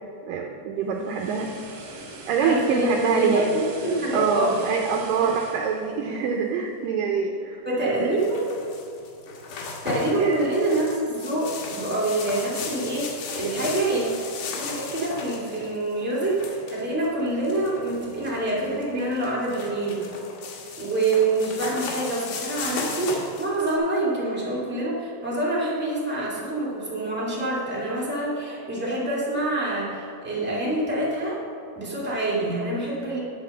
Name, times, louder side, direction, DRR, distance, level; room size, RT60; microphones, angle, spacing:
voice 1, 0.3-1.5 2.3-3.5 4.1-8.2 10.2-10.5 18.9-19.1, right 6 dB, 80° right, 1 dB, 2.0 m, -25 dB
sound 1, 0.7-6.9 7.3-7.5, right 2 dB, 55° right, 1.8 m, -42 dB
voice 2, 2.4-4.6 5.2-5.3 7.6-8.4 9.8-14.1 14.5-20.0 20.8-31.4 31.7-33.2, right 2 dB, 15° right, -7 dB, 0.4 m, -26 dB
sound 2, 8.2-23.8, left 4 dB, 85° left, 3.4 m, -36 dB
10.0 x 6.3 x 6.5 m, 2.7 s
omnidirectional pair, 4.7 m